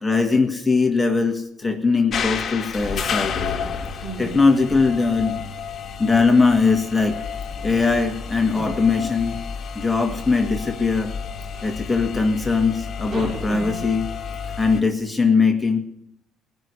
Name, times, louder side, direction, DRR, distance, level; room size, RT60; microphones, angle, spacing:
voice 1, 0.0-3.4 4.2-5.4 6.0-7.2 7.6-9.4 9.8-11.1 11.6-14.1 14.6-15.8, left 4 dB, 15° left, 1.8 m, -20 dB
sound 1, 2.1-14.8, left 6 dB, 45° left, 1.9 m, -31 dB
voice 2, 3.6-4.3 6.3-6.4 7.5-7.9 8.5-8.8 11.6-11.7 13.1-13.9, right 3 dB, 40° right, 3.3 m, -35 dB
18.5 x 6.2 x 9.8 m
cardioid pair, 90°, 0 cm